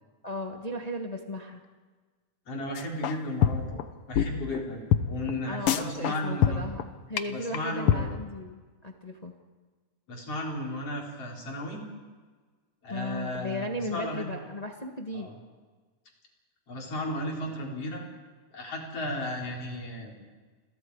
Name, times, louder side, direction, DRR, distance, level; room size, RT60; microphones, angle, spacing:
voice 1, 0.2-1.6 5.5-9.3 12.9-15.3, left 1 dB, 35° left, 2 dB, 0.6 m, -36 dB
voice 2, 2.5-6.7 7.3-8.1 10.1-11.8 12.8-14.3 15.1-15.3 16.7-18.0 18.5-20.2, left 1 dB, 50° left, -1 dB, 4.9 m, -34 dB
sound 1, 2.8-3.2 3.4-3.8 4.1-4.2 4.5-4.6 4.9-5.0 5.3-5.4 5.7-6.2 6.4-6.8 7.2-7.3 7.5-7.6 7.9-8.0, left 10 dB, 70° left, 1.3 m, -23 dB
29.5 x 22.0 x 4.8 m, 1.4 s
omnidirectional pair, 3.6 m